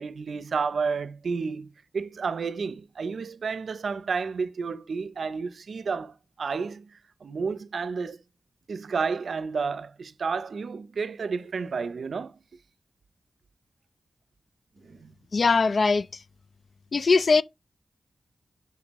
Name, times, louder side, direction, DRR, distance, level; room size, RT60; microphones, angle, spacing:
voice 1, 0.0-1.7 1.9-6.9 7.2-8.2 8.7-12.4 14.8-15.1, right 5 dB, 75° right, 0.5 m, -31 dB
voice 2, 15.3-16.1 16.9-17.4, left 4 dB, 60° left, 0.3 m, -20 dB
7.1 x 5.8 x 3.0 m
cardioid pair, 65°, 0 cm